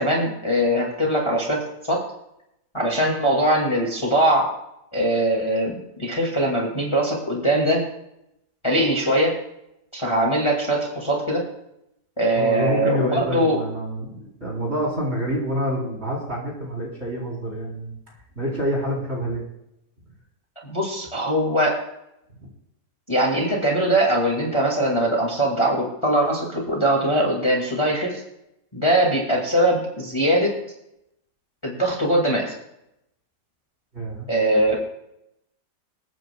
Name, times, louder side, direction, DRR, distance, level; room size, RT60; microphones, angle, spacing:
voice 1, 0.0-1.6 1.9-2.0 2.7-4.5 4.9-7.8 8.6-9.3 9.9-11.4 12.2-13.6 20.6-21.8 23.1-28.2 28.7-30.5 31.6-32.5 34.3-34.8, right 1 dB, 15° left, -2 dB, 2.2 m, -21 dB
voice 2, 12.4-18.0 18.4-19.4 33.9-34.3, equal, 35° right, -3 dB, 4.2 m, -27 dB
26.5 x 9.2 x 2.3 m, 0.82 s
omnidirectional pair, 1.9 m